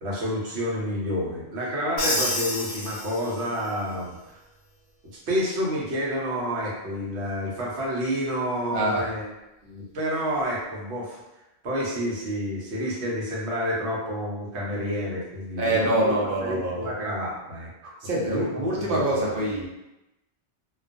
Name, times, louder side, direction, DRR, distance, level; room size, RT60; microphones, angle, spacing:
voice 1, 0.0-4.4 5.3-9.3 9.6-11.2 11.6-16.1 16.4-17.9 18.2-18.6 18.8-19.3, equal, 85° right, -4 dB, 1.0 m, -29 dB
Crash cymbal, 2.0-3.7, left 1 dB, 90° left, 0.9 m, -29 dB
voice 2, 8.7-9.1 15.6-16.9 18.0-19.7, right 1 dB, 60° right, -4 dB, 0.8 m, -25 dB
2.3 x 2.2 x 2.5 m, 0.96 s
omnidirectional pair, 1.1 m